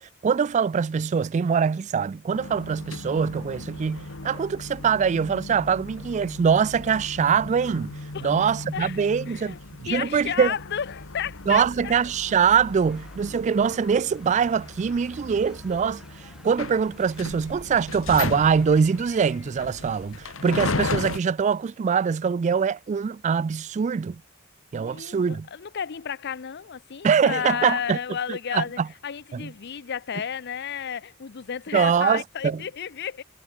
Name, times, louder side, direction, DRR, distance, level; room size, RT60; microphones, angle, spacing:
voice 1, 0.0-10.5 11.5-24.2 24.7-25.5 27.0-28.0 28.3-28.9 29.3-29.5 31.7-32.6, right 6 dB, 35° right, 0.3 m, -23 dB
sound 1, 2.3-21.2, left 3 dB, 75° left, 1.9 m, -36 dB
voice 2, 8.1-9.6 9.9-12.0 24.7-33.2, left 8 dB, 55° left, 0.6 m, -32 dB
sound 2, 12.6-20.7, equal, 5° right, 6.6 m, -54 dB
sound 3, 15.3-20.7, left 6 dB, 35° left, 5.3 m, -59 dB
head